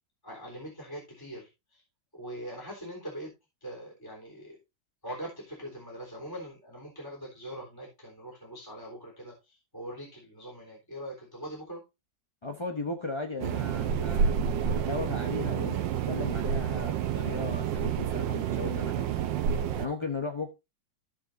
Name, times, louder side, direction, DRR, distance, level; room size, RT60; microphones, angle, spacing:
voice 1, 0.2-1.8 2.1-3.3 3.6-4.6 5.0-11.8, equal, 10° left, -3 dB, 3.5 m, -42 dB
voice 2, 12.4-19.1 19.8-20.5, left 3 dB, 30° left, 4 dB, 0.5 m, -36 dB
sound 1, 13.4-19.9, right 8 dB, 80° right, 1.4 m, -29 dB
16.0 x 5.4 x 2.6 m, 0.25 s
omnidirectional pair, 2.0 m